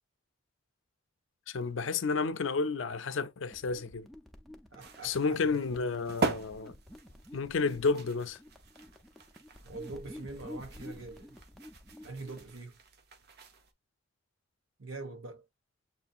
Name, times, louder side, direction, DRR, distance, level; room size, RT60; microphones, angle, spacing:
voice 1, 1.5-4.1 5.0-6.7 7.3-8.4, left 4 dB, 65° left, 0.5 m, -31 dB
sound 1, 3.5-12.6, left 1 dB, ahead, 0.6 m, -50 dB
voice 2, 4.7-5.4 9.6-11.4 12.0-12.8 14.8-15.4, right 3 dB, 70° right, 1.3 m, -43 dB
sound 2, 4.8-13.7, right 3 dB, 50° right, 0.7 m, -41 dB
7.4 x 2.8 x 2.4 m
head